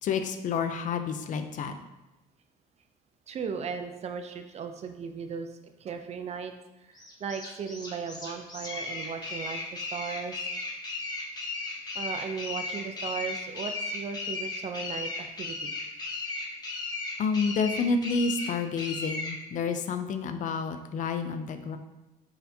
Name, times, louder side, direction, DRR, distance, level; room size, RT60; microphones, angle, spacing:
voice 1, 0.0-1.7 17.2-21.8, left 5 dB, 50° left, 8 dB, 0.4 m, -29 dB
voice 2, 3.3-6.5 6.9-10.4 12.0-15.7, right 6 dB, 40° right, 7 dB, 0.4 m, -37 dB
sound 1, 7.0-19.4, left 3 dB, 25° left, 1.0 m, -35 dB
4.1 x 4.0 x 2.7 m, 1.0 s
cardioid pair, 110°, 17 cm